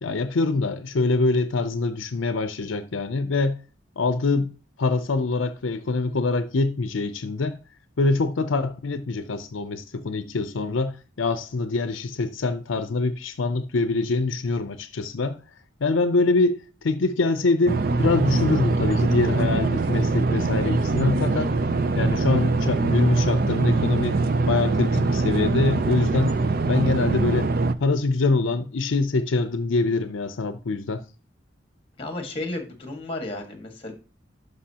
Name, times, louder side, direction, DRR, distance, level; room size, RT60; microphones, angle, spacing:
voice 1, 0.0-3.6 4.0-4.5 4.8-7.6 8.0-15.4 15.8-21.5 22.0-24.2 24.5-26.4 26.6-27.5 27.8-31.0, left 3 dB, 80° left, 0.5 m, -24 dB
sound 1, 17.7-27.7, right 3 dB, 50° right, 0.5 m, -23 dB
voice 2, 32.0-33.9, left 2 dB, 25° left, 1.7 m, -33 dB
11.5 x 5.5 x 2.9 m
head